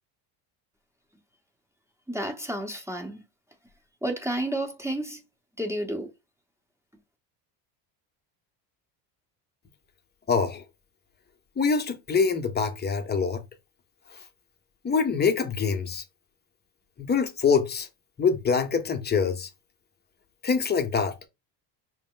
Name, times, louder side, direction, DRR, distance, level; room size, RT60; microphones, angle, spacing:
voice 1, 2.1-3.2 4.0-5.2 5.6-6.1, right 1 dB, 5° right, 1.0 m, -31 dB
voice 2, 10.3-10.6 11.6-13.4 14.8-16.0 17.1-17.9 18.2-19.5 20.4-21.1, left 5 dB, 20° left, 0.9 m, -24 dB
5.0 x 2.1 x 3.8 m
supercardioid pair, 90°, 48 cm